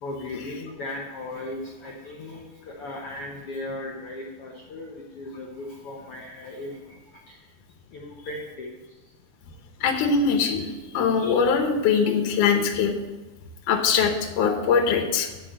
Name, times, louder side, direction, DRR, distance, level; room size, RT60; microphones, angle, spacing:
voice 1, 0.0-7.5 7.9-9.0, left 2 dB, 90° left, -1 dB, 1.2 m, -37 dB
voice 2, 9.8-12.9 13.7-15.3, left 6 dB, 70° left, 2 dB, 2.3 m, -22 dB
9.8 x 4.9 x 7.8 m, 1.1 s
omnidirectional pair, 4.2 m